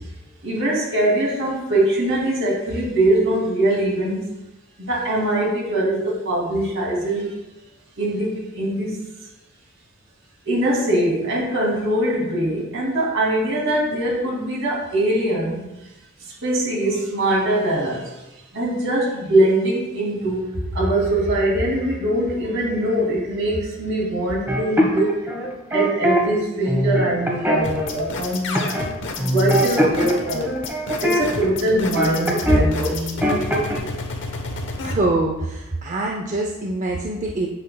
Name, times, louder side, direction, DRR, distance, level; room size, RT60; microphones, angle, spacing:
voice 1, 0.4-4.2 4.8-7.3 8.0-9.0 10.5-15.6 16.4-18.2 18.5-25.1 25.7-28.6 29.2-30.5 31.0-33.1, right 1 dB, 60° right, -3 dB, 2.5 m, -22 dB
sound 1, 24.5-26.2 26.7-27.9 28.5-28.9 29.2-32.7 32.9-33.8, equal, 10° right, 1.1 m, -22 dB
sound 2, 27.6-34.9, left 4 dB, 60° left, 0.9 m, -31 dB
voice 2, 34.8-37.5, right 2 dB, 35° right, 1 dB, 0.6 m, -24 dB
8.7 x 7.6 x 2.2 m, 1.0 s
head